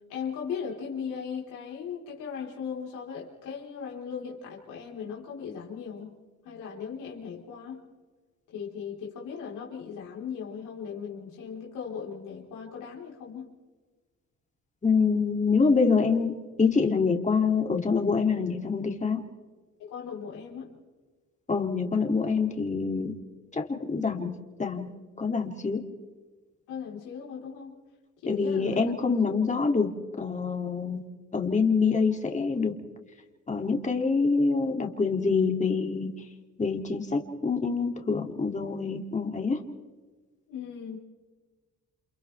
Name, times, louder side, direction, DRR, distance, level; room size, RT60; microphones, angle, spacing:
voice 1, 0.1-6.2 6.4-7.8 8.5-13.5 19.8-20.7 26.7-27.7 28.2-28.9 40.5-41.0, left 7 dB, 90° left, -3 dB, 4.2 m, -38 dB
voice 2, 14.8-19.2 21.5-23.1 23.5-24.3 24.6-24.9 25.2-25.8 28.3-31.0 31.3-32.7 33.5-36.1 36.6-39.6, left 4 dB, 25° left, 3 dB, 2.7 m, -26 dB
29.5 x 27.5 x 3.5 m, 1.3 s
cardioid pair, 90°, 30 cm